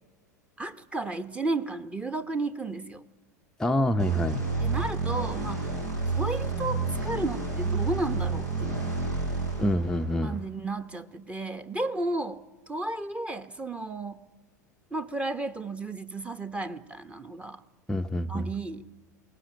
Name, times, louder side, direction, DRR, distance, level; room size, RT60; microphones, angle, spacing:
voice 1, 0.6-3.0 4.6-5.8 6.1-8.9 10.2-12.4 12.7-14.2 14.9-17.6 18.3-18.9, right 2 dB, 10° right, 10 dB, 1.1 m, -33 dB
voice 2, 3.6-4.4 9.6-10.4 17.9-18.4, left 1 dB, 5° left, 4 dB, 0.7 m, -26 dB
sound 1, 4.0-10.5, right 3 dB, 80° right, 7.6 m, -30 dB
22.5 x 19.0 x 9.1 m, 1.2 s
figure-of-eight pair, 85°, 10 cm